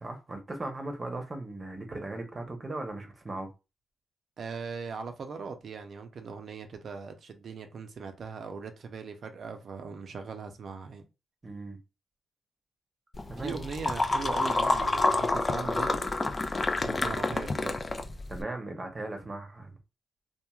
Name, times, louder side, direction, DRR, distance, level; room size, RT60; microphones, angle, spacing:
voice 1, 0.0-3.5 11.4-11.8 13.3-13.5 16.8-17.0 18.3-19.8, right 2 dB, 35° right, 0.8 m, -38 dB
voice 2, 4.4-11.0 13.3-16.1 16.8-17.8, right 5 dB, 65° right, 0.6 m, -39 dB
sound 1, 13.1-18.4, left 2 dB, 35° left, 0.4 m, -28 dB
3.0 x 2.4 x 2.3 m
cardioid pair, 70°, 0 cm